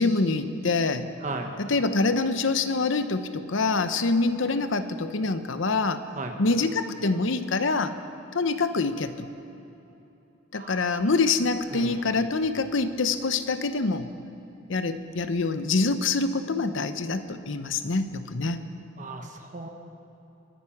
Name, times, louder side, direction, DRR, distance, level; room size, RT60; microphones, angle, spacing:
voice 1, 0.0-1.1 1.6-6.0 6.4-7.9 8.3-9.3 10.5-14.1 14.7-18.6, left 3 dB, 75° left, 10 dB, 0.8 m, -25 dB
voice 2, 1.2-1.5 6.2-6.4 10.5-11.0 11.7-12.3 19.0-19.7, right 2 dB, 40° right, 4 dB, 1.4 m, -36 dB
23.5 x 9.5 x 5.9 m, 3.0 s
head